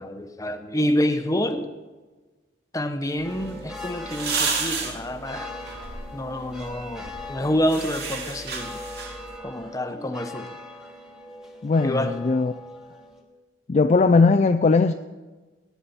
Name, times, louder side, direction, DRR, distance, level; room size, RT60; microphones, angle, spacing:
voice 1, 0.0-1.7 2.7-5.5 6.1-8.8 9.4-10.5 11.8-12.1, equal, 15° left, 8 dB, 0.7 m, -27 dB
sound 1, 3.2-13.2, left 1 dB, 5° right, 1.4 m, -41 dB
sound 2, 3.2-9.4, right 4 dB, 55° right, 2.1 m, -33 dB
voice 2, 11.6-12.5 13.7-14.9, left 4 dB, 35° left, 7 dB, 0.3 m, -19 dB
18.0 x 9.3 x 4.2 m, 1.3 s
head